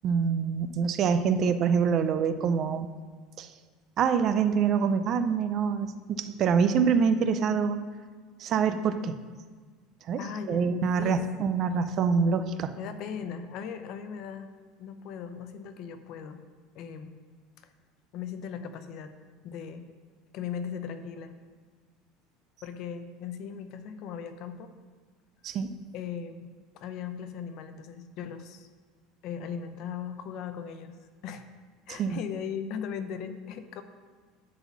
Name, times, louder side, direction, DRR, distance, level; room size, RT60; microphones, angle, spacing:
voice 1, 0.0-2.9 3.4-3.5 4.0-7.8 8.4-9.2 10.1-10.2 10.5-12.7 25.4-25.8 31.9-32.2, right 6 dB, 35° right, 10 dB, 0.4 m, -25 dB
voice 2, 10.2-10.7 11.0-11.3 12.8-14.5 14.8-16.4 16.7-17.1 17.6-17.7 18.1-19.1 19.4-19.9 20.3-21.3 22.6-24.7 25.9-26.5 26.7-28.7 29.2-31.4 31.9-33.8, left 7 dB, 45° left, 9 dB, 0.6 m, -38 dB
11.0 x 4.1 x 7.2 m, 1.5 s
cardioid pair, 170°, 0 cm